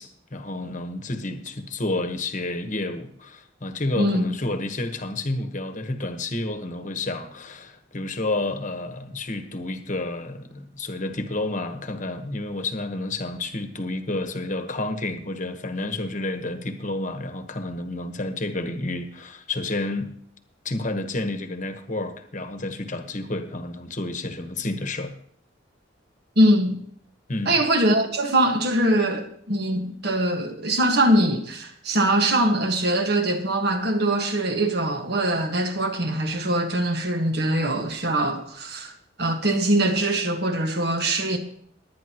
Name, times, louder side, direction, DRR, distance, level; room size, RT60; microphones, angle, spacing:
voice 1, 0.0-20.1 20.6-25.1 27.3-27.6, left 2 dB, 40° left, 1.2 m, -30 dB
voice 2, 4.0-4.3 26.4-26.8 27.5-38.9 39.2-41.4, right 1 dB, 55° right, 1.6 m, -22 dB
19.5 x 9.6 x 3.0 m
head